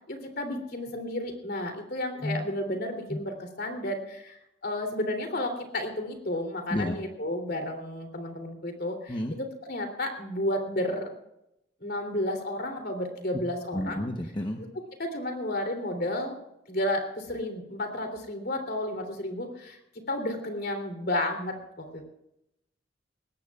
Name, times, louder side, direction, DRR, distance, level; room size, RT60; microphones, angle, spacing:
voice 1, 0.1-11.1 11.8-14.1 14.6-16.4 16.7-19.8 20.1-22.0, left 1 dB, 55° left, 5 dB, 3.1 m, -32 dB
voice 2, 13.7-14.6, left 1 dB, 25° left, 3 dB, 0.9 m, -30 dB
20.5 x 17.0 x 2.4 m, 0.83 s
head